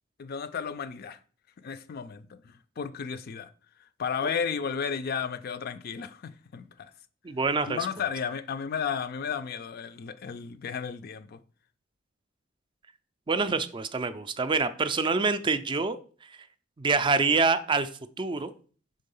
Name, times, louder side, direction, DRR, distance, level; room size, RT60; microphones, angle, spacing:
voice 1, 0.2-1.2 1.6-3.5 4.0-6.9 7.6-11.4, left 6 dB, 50° left, 0.4 m, -33 dB
voice 2, 7.2-7.8 13.3-16.0 16.8-17.9 18.2-18.5, right 4 dB, 25° right, 0.4 m, -26 dB
5.4 x 3.7 x 5.4 m
head